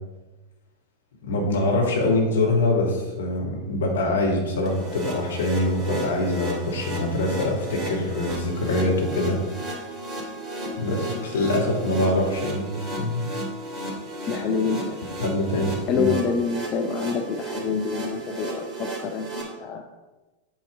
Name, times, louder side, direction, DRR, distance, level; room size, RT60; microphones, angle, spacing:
voice 1, 1.2-9.4 10.8-13.2 15.2-16.1, left 2 dB, 65° left, -1 dB, 2.0 m, -24 dB
sound 1, 4.7-19.4, right 1 dB, 10° right, 2.2 m, -34 dB
voice 2, 14.3-15.0 15.9-19.8, left 5 dB, 35° left, 3 dB, 0.6 m, -27 dB
8.7 x 5.6 x 3.7 m, 1.1 s
figure-of-eight pair, 90°, 0 cm